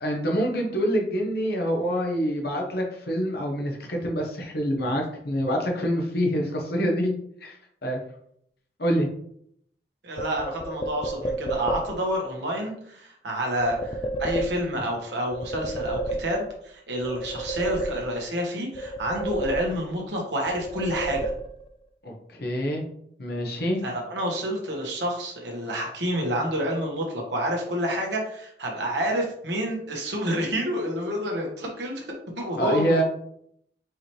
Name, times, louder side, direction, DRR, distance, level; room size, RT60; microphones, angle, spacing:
voice 1, 0.0-7.1 7.4-7.6 7.8-8.0 8.8-9.1 22.0-22.9 23.2-23.8 32.6-33.0, equal, 60° left, 0 dB, 0.9 m, -26 dB
voice 2, 10.0-21.3 23.8-32.0 32.4-33.0, equal, 75° right, 0 dB, 1.3 m, -29 dB
sound 1, 10.2-12.1 13.6-15.0 15.3-16.7 17.0-18.4 18.7-20.1 20.5-21.8, right 1 dB, 30° left, 0.3 m, -31 dB
4.7 x 3.0 x 3.2 m, 0.69 s
head